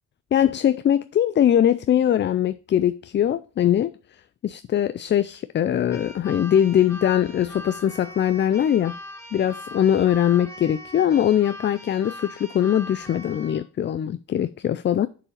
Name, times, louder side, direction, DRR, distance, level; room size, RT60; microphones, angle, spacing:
voice 1, 0.3-9.0 9.3-15.1, left 10 dB, 40° left, 0.4 m, -21 dB
Keyboard (musical), 5.9-13.6, left 1 dB, 10° left, 1.9 m, -41 dB
6.9 x 4.9 x 5.1 m
cardioid pair, 90°, 30 cm